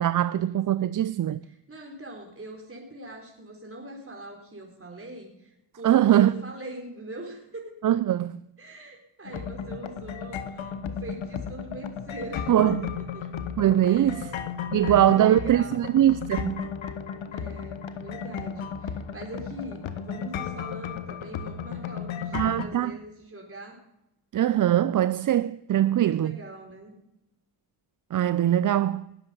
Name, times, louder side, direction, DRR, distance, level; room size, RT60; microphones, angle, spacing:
voice 1, 0.0-1.4 5.8-6.3 7.8-8.4 12.5-12.8 13.6-14.3 14.7-16.7 22.3-22.9 24.3-26.4 28.1-29.0, right 11 dB, 40° right, 0.5 m, -22 dB
voice 2, 1.4-7.7 8.6-13.4 13.8-14.4 14.7-15.9 17.3-23.8 25.8-26.9, right 1 dB, 25° right, 3.9 m, -42 dB
sound 1, 9.2-22.6, left 7 dB, 65° left, 1.4 m, -34 dB
19.5 x 7.9 x 5.5 m
hypercardioid pair, 45°, 50 cm